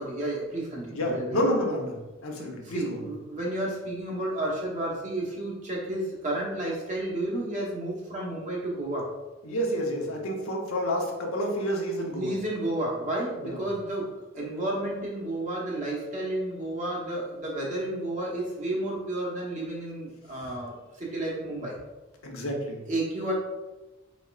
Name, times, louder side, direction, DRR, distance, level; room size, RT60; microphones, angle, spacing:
voice 1, 0.0-1.4 2.6-9.1 12.1-21.8 22.9-23.3, right 1 dB, 35° right, -3 dB, 1.0 m, -31 dB
voice 2, 0.9-1.9 2.2-3.0 9.4-12.3 13.4-13.6 22.2-22.8, equal, 80° left, 0 dB, 0.9 m, -29 dB
4.3 x 4.1 x 2.4 m, 1.1 s
head